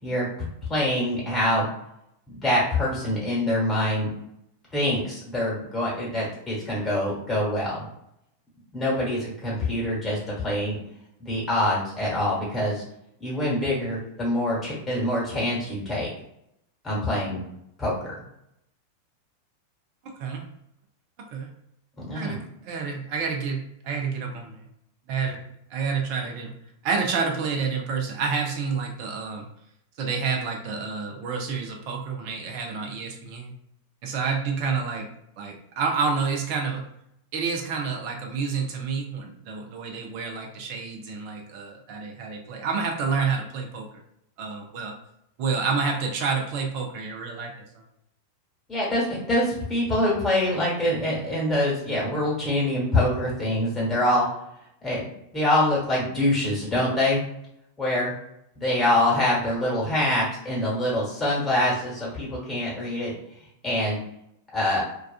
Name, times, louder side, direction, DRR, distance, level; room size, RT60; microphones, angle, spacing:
voice 1, 0.0-1.7 2.3-4.1 4.7-7.8 8.7-10.8 11.2-12.8 13.2-16.1 16.8-17.4 17.8-18.0 22.0-22.4 48.7-54.3 54.8-55.0 55.3-57.2 57.8-58.1 58.5-63.1 63.6-64.0 64.5-64.8, left 1 dB, 15° left, -5 dB, 1.3 m, -25 dB
voice 2, 20.0-20.4 21.3-21.5 22.1-24.6 25.1-25.4 25.7-26.5 26.8-29.5 30.0-33.5 34.0-35.1 35.4-36.8 37.3-43.9 44.4-44.9 45.4-47.5, right 5 dB, 45° right, 2 dB, 0.5 m, -29 dB
2.3 x 2.3 x 2.3 m, 0.78 s
figure-of-eight pair, 90°, 0 cm